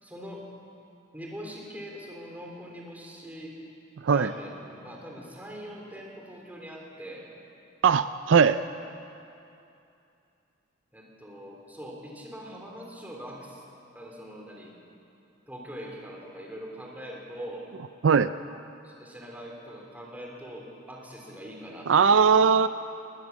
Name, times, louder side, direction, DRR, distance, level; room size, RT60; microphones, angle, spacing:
voice 1, 0.0-0.5 1.1-3.6 4.1-7.3 10.9-13.6 14.0-14.7 15.5-17.7 18.8-22.4, equal, 10° right, -1 dB, 3.6 m, -42 dB
voice 2, 7.8-8.6 18.0-18.3 21.9-22.7, right 6 dB, 70° right, 12 dB, 0.4 m, -19 dB
20.5 x 19.0 x 7.3 m, 2.7 s
head